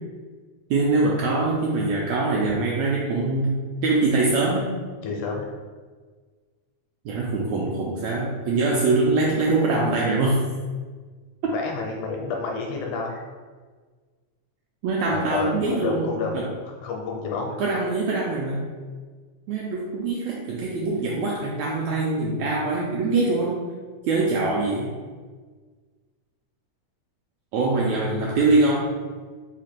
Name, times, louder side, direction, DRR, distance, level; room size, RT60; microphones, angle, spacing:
voice 1, 0.7-4.7 7.0-10.4 11.4-11.5 14.8-16.5 17.6-18.6 19.5-23.6 24.0-24.9 27.5-28.9, right 3 dB, 85° right, -4 dB, 1.6 m, -23 dB
voice 2, 5.0-5.5 11.5-13.2 15.1-17.6, left 4 dB, 80° left, 0 dB, 1.9 m, -30 dB
4.9 x 2.5 x 4.3 m, 1.5 s
omnidirectional pair, 3.7 m